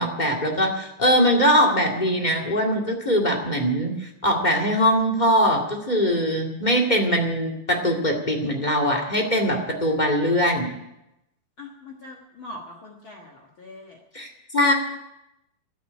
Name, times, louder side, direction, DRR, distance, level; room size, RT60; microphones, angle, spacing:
voice 1, 0.0-10.7 14.1-14.7, equal, 15° left, 0 dB, 1.8 m, -22 dB
voice 2, 11.6-14.0, left 2 dB, 45° left, -1 dB, 2.0 m, -42 dB
13.0 x 9.3 x 9.8 m, 0.89 s
omnidirectional pair, 3.6 m